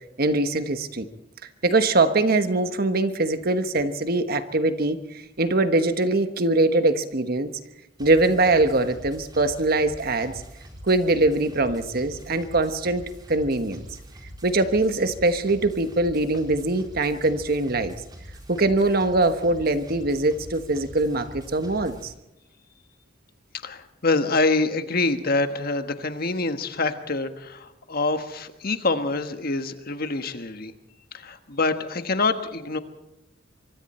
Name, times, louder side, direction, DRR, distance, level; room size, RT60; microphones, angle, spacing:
voice 1, 0.2-1.1 1.6-5.0 5.4-7.5 8.0-10.3 10.8-13.0 13.3-13.9 14.4-17.9 18.5-22.1, right 2 dB, 55° right, 9 dB, 1.3 m, -22 dB
sound 1, 8.0-22.0, equal, 25° right, 4.7 m, -44 dB
voice 2, 23.6-30.7 31.1-32.8, left 3 dB, 55° left, 8 dB, 1.4 m, -25 dB
25.0 x 24.0 x 4.4 m, 0.88 s
head